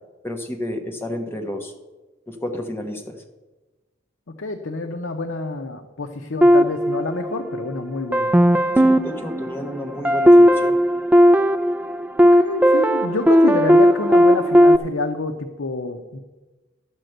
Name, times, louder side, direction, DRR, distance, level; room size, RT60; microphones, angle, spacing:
voice 1, 0.2-1.7 2.3-3.2 8.8-10.8, left 1 dB, 10° left, 3 dB, 1.2 m, -31 dB
voice 2, 4.3-8.3 12.3-16.2, left 3 dB, 90° left, 4 dB, 0.8 m, -27 dB
sound 1, 6.4-7.7 8.1-14.8, equal, 10° right, 0.4 m, -16 dB
12.5 x 5.1 x 7.8 m, 1.1 s
head